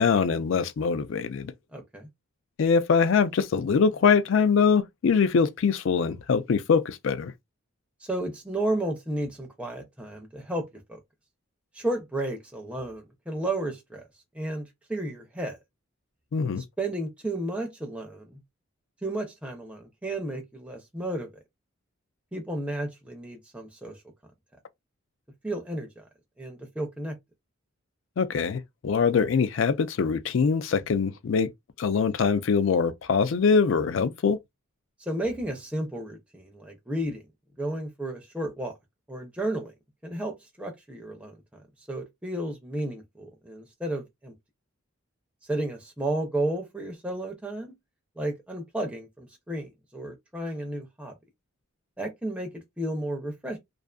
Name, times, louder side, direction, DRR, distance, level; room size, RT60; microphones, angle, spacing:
voice 1, 0.0-1.5 2.6-7.3 16.3-16.6 28.2-31.5 31.8-34.4, left 5 dB, 65° left, 0.4 m, -23 dB
voice 2, 1.7-2.1 8.0-11.0 11.7-14.0 14.3-15.6 16.8-18.4 19.0-21.3 22.3-24.0 25.4-26.0 26.4-27.2 35.0-37.2 37.6-38.7 39.1-39.7 40.0-41.4 41.9-44.3 45.5-47.7 48.2-51.1 52.0-53.6, right 1 dB, 5° right, 0.4 m, -32 dB
2.4 x 2.4 x 2.3 m
head